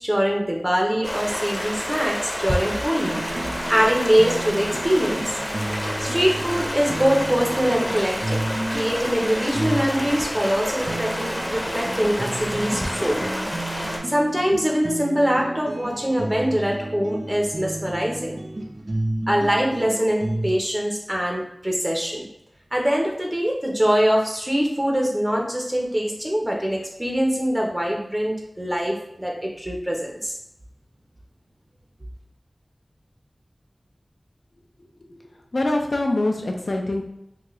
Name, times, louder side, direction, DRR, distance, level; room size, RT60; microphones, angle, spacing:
voice 1, 0.0-5.4 6.0-8.4 8.7-13.3 14.1-18.4 19.3-22.3 22.7-30.4, equal, 25° right, 0 dB, 0.7 m, -23 dB
Stream, 1.0-14.0, equal, 15° left, 0.7 m, -29 dB
sound 1, 3.0-20.6, right 1 dB, 60° right, 0.4 m, -32 dB
voice 2, 35.5-37.0, left 2 dB, 75° left, 2 dB, 0.5 m, -24 dB
3.8 x 2.3 x 3.0 m, 0.83 s
wide cardioid pair, 45°, 0 cm